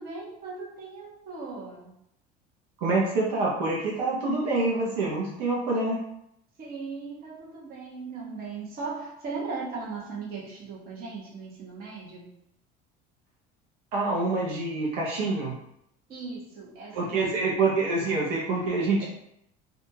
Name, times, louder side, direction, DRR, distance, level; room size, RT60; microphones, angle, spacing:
voice 1, 0.0-1.9 6.6-12.3 16.1-17.4, right 4 dB, 50° right, -4 dB, 1.0 m, -38 dB
voice 2, 2.8-6.0 13.9-15.6 16.9-19.1, right 3 dB, 85° right, -3 dB, 0.7 m, -26 dB
2.6 x 2.3 x 2.7 m, 0.77 s
supercardioid pair, 115°, 20 cm